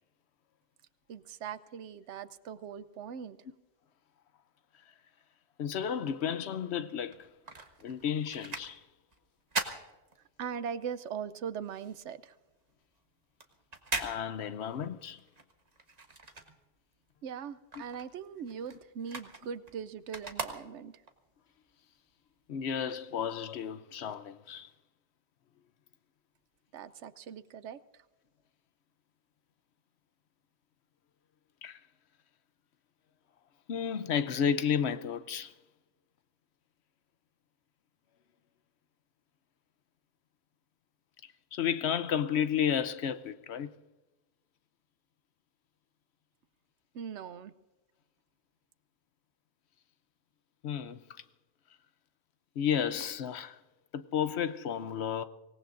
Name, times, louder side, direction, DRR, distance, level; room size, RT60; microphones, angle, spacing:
voice 1, 1.1-3.4 10.4-12.3 17.2-21.0 26.7-27.8 46.9-47.5, right 7 dB, 80° right, 1.0 m, -40 dB
voice 2, 5.6-7.3 7.8-8.8 14.0-15.2 22.5-24.7 31.6-31.8 33.7-35.5 41.2-43.7 50.6-51.2 52.6-53.6 53.9-55.2, left 8 dB, 70° left, 0.9 m, -32 dB
sound 1, 7.0-10.7 11.1-17.1 17.4-21.2 21.7-21.8, right 3 dB, 35° right, 1.3 m, -41 dB
25.0 x 18.0 x 2.6 m
omnidirectional pair, 1.2 m